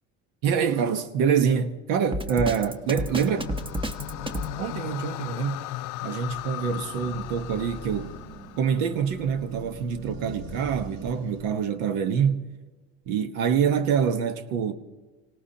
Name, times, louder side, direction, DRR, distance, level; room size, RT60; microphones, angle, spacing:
voice 1, 0.4-3.4 4.6-5.7 6.0-8.1 8.6-12.5 13.1-14.7, right 7 dB, 85° right, 1.2 m, -25 dB
Drum kit, 2.1-4.5, right 1 dB, 15° right, 0.9 m, -30 dB
sound 1, 2.2-11.7, right 1 dB, 60° right, 4.7 m, -44 dB
sound 2, 2.9-9.2, left 17 dB, 75° left, 0.5 m, -37 dB
27.0 x 18.0 x 2.9 m
cardioid pair, 110°, 31 cm